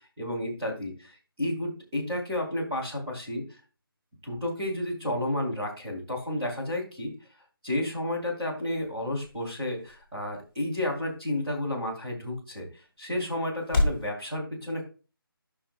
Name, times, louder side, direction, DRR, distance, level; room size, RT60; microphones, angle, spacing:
voice 1, 0.2-3.4 4.2-7.1 7.6-14.8, left 1 dB, 10° right, -7 dB, 2.4 m, -31 dB
sound 1, 7.8-14.1, left 2 dB, 10° left, 2.8 m, -35 dB
12.0 x 6.1 x 2.5 m, 0.34 s
figure-of-eight pair, 175°, 13 cm